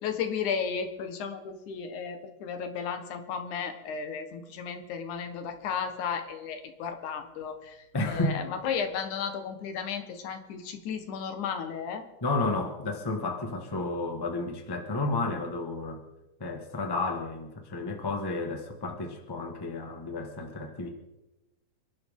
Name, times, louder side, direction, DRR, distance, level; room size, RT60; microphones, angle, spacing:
voice 1, 0.0-12.0, left 6 dB, 80° left, 6 dB, 2.9 m, -34 dB
voice 2, 7.9-8.4 12.2-16.0 16.4-20.9, left 2 dB, 10° left, 3 dB, 1.1 m, -31 dB
28.0 x 11.5 x 3.7 m, 1.0 s
omnidirectional pair, 3.5 m